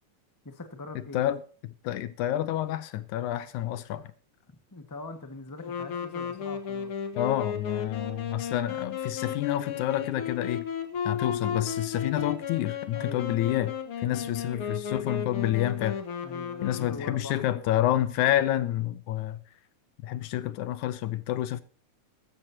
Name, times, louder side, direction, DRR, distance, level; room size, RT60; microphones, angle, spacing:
voice 1, 0.4-1.3 4.7-6.9 12.9-13.6 14.1-14.4 16.2-18.1, left 3 dB, 15° left, 0.7 m, -43 dB
voice 2, 1.1-4.1 7.2-10.7 11.1-16.0 16.6-19.4 20.0-21.6, left 13 dB, 80° left, 2.0 m, -29 dB
Wind instrument woodwind instrument, 5.6-17.3, left 7 dB, 55° left, 1.9 m, -34 dB
14.5 x 13.0 x 2.8 m
omnidirectional pair, 3.6 m